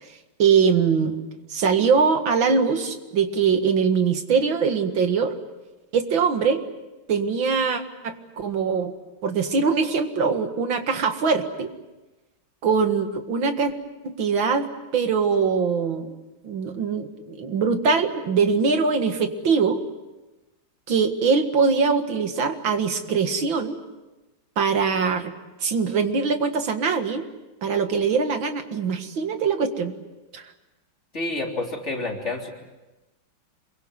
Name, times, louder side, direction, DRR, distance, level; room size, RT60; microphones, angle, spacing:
voice 1, 0.4-1.2 1.5-5.4 5.9-6.6 7.1-8.9 9.2-11.7 12.6-13.7 14.0-16.1 16.4-19.8 20.9-23.8 24.6-25.3 25.6-27.3 27.6-29.9 30.3-30.5, right 5 dB, 80° right, 7 dB, 2.5 m, -22 dB
voice 2, 31.1-32.5, left 2 dB, 35° left, 0 dB, 3.9 m, -29 dB
26.5 x 23.0 x 8.0 m, 1.1 s
omnidirectional pair, 2.1 m